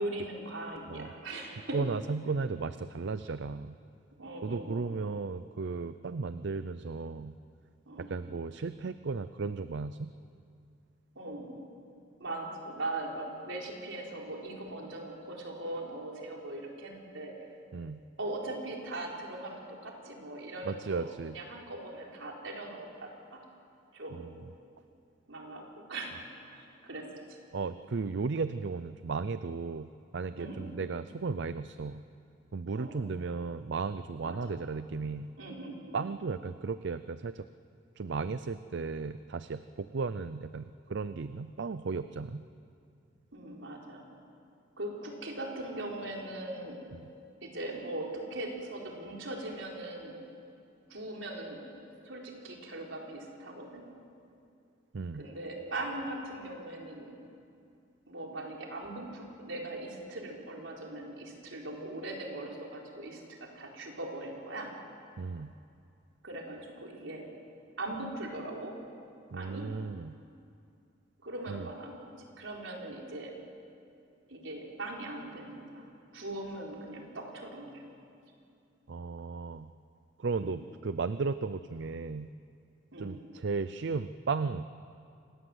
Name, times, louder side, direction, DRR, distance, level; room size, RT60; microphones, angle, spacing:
voice 1, 0.0-1.8 4.2-5.0 7.9-8.1 11.2-11.6 12.2-17.3 18.2-23.4 23.9-24.2 25.3-27.4 30.4-30.8 32.8-33.0 34.2-34.6 35.4-36.0 43.3-44.1 44.8-46.8 47.4-50.2 50.9-51.6 52.0-53.8 55.1-57.1 58.1-64.7 66.2-67.3 67.8-68.7 69.3-69.7 71.2-73.4 74.3-75.8 76.1-77.8 80.4-80.6 82.9-83.2, right 2 dB, 80° right, -1 dB, 4.4 m, -40 dB
voice 2, 1.7-3.8 4.4-7.4 8.0-10.1 17.7-18.0 20.6-21.4 24.2-24.3 27.5-32.0 32.5-35.3 35.9-37.5 38.0-42.4 46.9-47.1 54.9-55.3 65.2-65.5 69.3-70.1 71.5-71.7 78.9-79.7 80.2-82.3 83.0-84.6, right 4 dB, 65° right, 13 dB, 0.5 m, -35 dB
26.5 x 19.0 x 8.0 m, 2.5 s
head